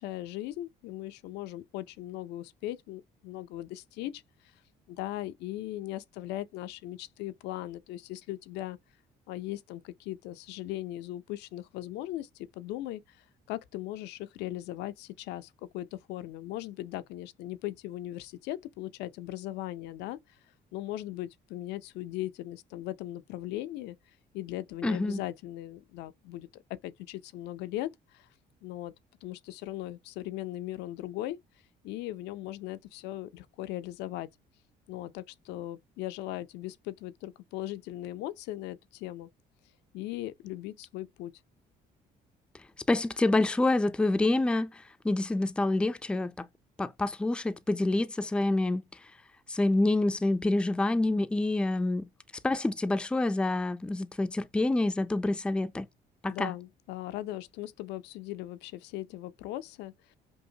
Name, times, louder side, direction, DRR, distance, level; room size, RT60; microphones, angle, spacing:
voice 1, 0.0-4.2 4.9-8.8 9.3-20.4 20.7-24.0 24.3-26.5 26.8-28.3 28.6-28.9 29.2-31.4 31.8-34.3 34.9-39.3 39.9-41.3 56.3-60.2, left 15 dB, 90° left, 0.5 m, -38 dB
voice 2, 24.8-25.2 42.9-46.5 46.8-48.8 49.5-52.1 52.4-55.9 56.2-56.5, left 2 dB, 5° left, 0.3 m, -27 dB
5.3 x 2.1 x 2.7 m
cardioid pair, 110°, 17 cm